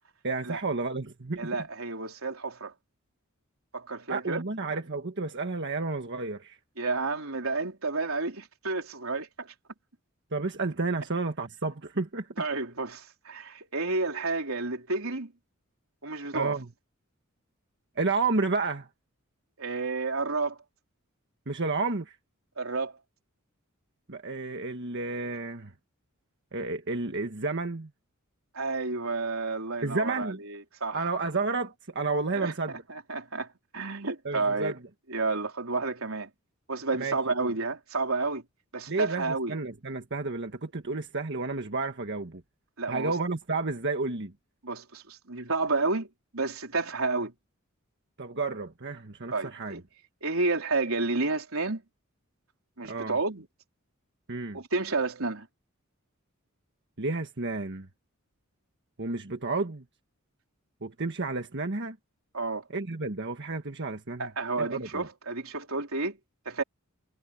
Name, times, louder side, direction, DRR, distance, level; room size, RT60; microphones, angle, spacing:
voice 1, 0.2-1.6 4.1-6.6 10.3-12.4 16.3-16.7 17.9-18.9 21.5-22.2 24.1-25.7 26.5-27.9 29.8-30.4 30.9-32.8 34.2-34.8 37.0-37.5 38.9-42.4 42.9-44.3 48.2-49.8 52.8-53.2 54.3-54.6 57.0-57.9 59.0-59.8 60.8-62.0 62.7-64.3 64.6-65.1, right 3 dB, 55° right, 1.5 m, -31 dB
voice 2, 1.4-2.7 3.7-4.4 6.8-9.5 12.4-15.3 16.0-16.6 19.6-20.6 22.6-22.9 28.5-31.1 32.3-33.5 33.7-34.7 35.1-36.3 36.7-38.4 38.7-39.6 42.8-43.1 44.6-46.1 46.3-47.3 49.3-49.8 50.2-51.8 52.8-53.5 54.5-55.5 62.3-62.6 64.2-66.2 66.5-66.6, right 3 dB, 85° right, 3.8 m, -30 dB
head